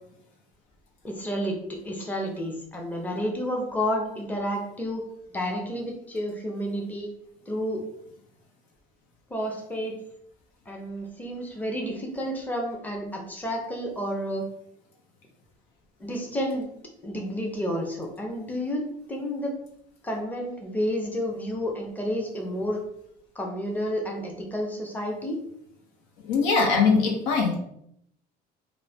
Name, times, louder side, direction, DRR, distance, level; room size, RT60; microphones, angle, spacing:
voice 1, 1.0-5.0 5.3-7.1 7.5-7.8 9.3-10.0 10.7-14.4 16.0-16.7 17.0-18.8 19.1-19.5 20.0-22.8 23.4-25.4, equal, 10° left, 1 dB, 0.6 m, -30 dB
voice 2, 26.2-27.5, left 4 dB, 85° left, 1 dB, 0.8 m, -21 dB
3.0 x 2.1 x 2.7 m, 0.72 s
cardioid pair, 100°, 20 cm